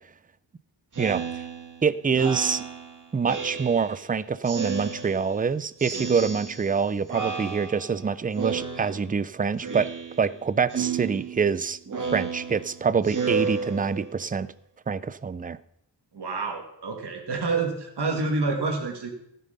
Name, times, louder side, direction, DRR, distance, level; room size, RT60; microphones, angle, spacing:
Speech synthesizer, 0.9-4.1 4.4-5.5 5.8-6.8 7.1-8.0 8.4-9.3 9.6-10.4 10.7-14.2, right 6 dB, 40° right, 1.9 m, -33 dB
voice 1, 1.0-1.4 1.8-2.6 3.1-9.9 10.2-11.8 12.1-14.5 14.9-15.6, right 5 dB, 20° right, 17 dB, 0.4 m, -25 dB
voice 2, 16.1-19.1, right 3 dB, 60° right, 3 dB, 2.5 m, -28 dB
16.5 x 9.3 x 5.4 m, 0.75 s
wide cardioid pair, 160°, 45 cm